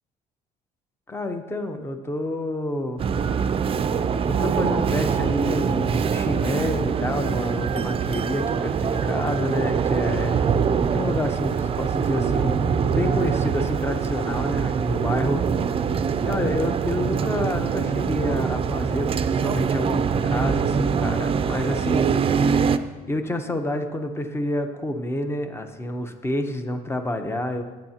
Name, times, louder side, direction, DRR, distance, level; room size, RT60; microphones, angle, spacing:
voice 1, 1.1-3.0 4.3-10.4 10.9-15.4 16.2-22.1 23.1-27.6, left 1 dB, 15° left, 7 dB, 0.9 m, -28 dB
sound 1, 3.0-22.8, right 6 dB, 35° right, 0.4 m, -23 dB
13.5 x 8.9 x 2.9 m, 1.3 s
cardioid pair, 110°, 17 cm